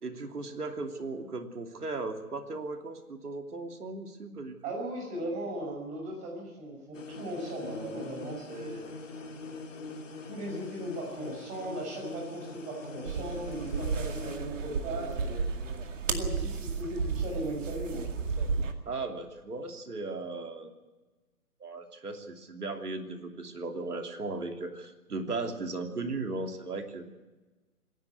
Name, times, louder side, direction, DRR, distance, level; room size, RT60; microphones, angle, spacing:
voice 1, 0.0-4.6 18.8-20.7 21.6-27.1, right 3 dB, 85° right, 5 dB, 3.1 m, -37 dB
voice 2, 4.6-8.8 9.7-9.8 10.3-15.5 16.1-18.1, right 1 dB, 15° right, 0 dB, 5.9 m, -37 dB
sound 1, 6.9-14.4, left 3 dB, 55° left, 3.6 m, -43 dB
sound 2, 13.0-18.7, right 5 dB, 55° right, 2.3 m, -33 dB
25.0 x 11.0 x 9.5 m, 1.2 s
hypercardioid pair, 155°, 45 cm